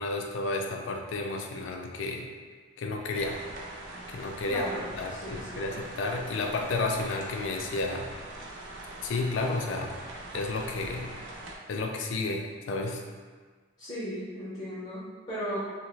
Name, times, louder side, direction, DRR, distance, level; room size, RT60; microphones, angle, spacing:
voice 1, 0.0-2.3 2.8-3.4 4.1-4.6 5.0-8.1 9.0-10.0 10.3-11.1 11.7-13.0, left 3 dB, 85° left, 2 dB, 0.4 m, -31 dB
sound 1, 3.1-11.6, right 2 dB, 85° right, 0.4 m, -43 dB
voice 2, 4.4-5.8 13.8-15.6, equal, 35° left, -11 dB, 0.7 m, -36 dB
2.5 x 2.5 x 3.0 m, 1.5 s
head